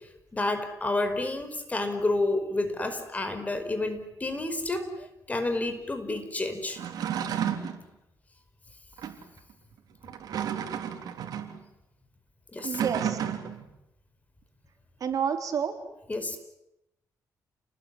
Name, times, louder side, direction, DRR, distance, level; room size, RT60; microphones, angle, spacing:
voice 1, 0.3-4.9 5.3-6.8 12.5-12.8 16.1-16.4, left 2 dB, 20° left, 8 dB, 5.1 m, -29 dB
sound 1, 6.7-7.8 9.0-9.2 10.0-11.6 12.6-13.7, right 9 dB, 80° right, 3.6 m, -32 dB
voice 2, 12.6-13.2 15.0-15.7, right 7 dB, 60° right, 5 dB, 4.2 m, -29 dB
29.5 x 20.5 x 10.0 m, 0.89 s
cardioid pair, 100°, 7 cm